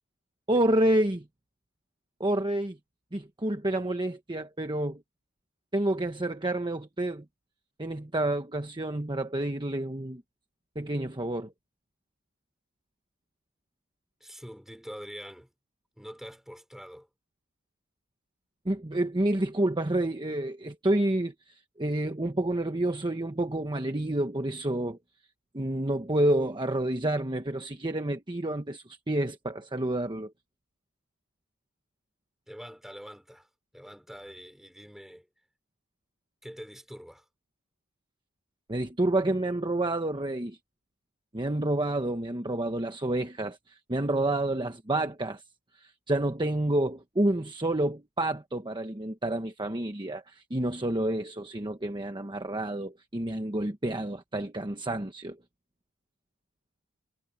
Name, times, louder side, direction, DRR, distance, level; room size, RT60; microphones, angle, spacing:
voice 1, 0.5-1.3 2.2-2.8 3.1-5.0 5.7-7.2 7.8-10.2 10.7-11.5 18.6-25.0 25.5-30.3 38.7-40.6 41.3-45.4 45.8-55.4, right 1 dB, 20° right, 1.2 m, -29 dB
voice 2, 14.2-15.5 16.0-17.1 32.5-33.5 33.7-35.3 36.4-37.2, equal, ahead, 5.0 m, -45 dB
head